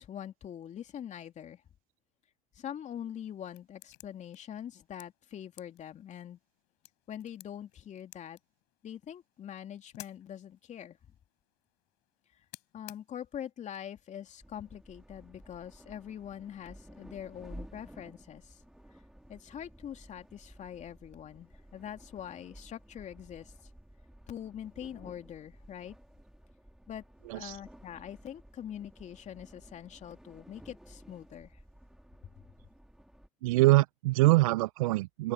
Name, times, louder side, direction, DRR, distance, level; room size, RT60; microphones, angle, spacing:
voice 1, 0.0-1.6 2.5-6.4 7.1-8.4 8.8-11.0 12.7-18.6 19.3-23.5 24.3-26.0 26.9-27.0 27.3-31.6, left 9 dB, 40° left, 2.8 m, -43 dB
sound 1, 2.9-13.5, left 25 dB, 65° left, 7.1 m, -57 dB
sound 2, 14.4-33.3, right 1 dB, 5° right, 3.5 m, -54 dB
voice 2, 33.4-35.3, right 20 dB, 75° right, 0.5 m, -24 dB
open air
hypercardioid pair, 75°, 18 cm